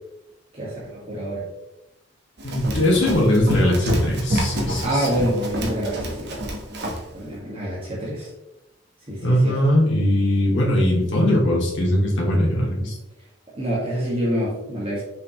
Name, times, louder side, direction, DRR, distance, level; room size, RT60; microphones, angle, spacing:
voice 1, 0.5-1.5 4.8-6.5 7.1-8.3 9.1-9.6 13.5-15.0, equal, 30° right, -7 dB, 1.8 m, -26 dB
voice 2, 2.4-5.2 9.2-12.9, left 1 dB, 65° left, -4 dB, 2.4 m, -20 dB
Run, 2.4-7.1, equal, 55° right, 1.3 m, -27 dB
6.7 x 5.3 x 3.1 m, 0.93 s
head